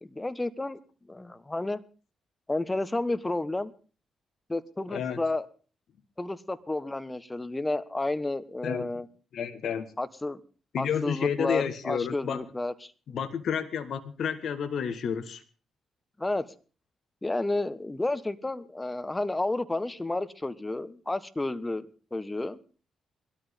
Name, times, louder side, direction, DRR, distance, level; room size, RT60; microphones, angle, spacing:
voice 1, 0.0-0.8 1.1-1.8 2.5-3.7 4.5-5.5 6.2-9.1 10.0-10.4 10.8-12.9 16.2-16.5 17.2-22.6, left 2 dB, 20° left, 14 dB, 1.3 m, -31 dB
voice 2, 4.9-5.2 8.6-8.9 9.3-9.9 10.7-12.4 13.1-15.4, left 7 dB, 65° left, 11 dB, 1.4 m, -30 dB
20.0 x 13.0 x 3.6 m, 0.38 s
hypercardioid pair, 40°, 0 cm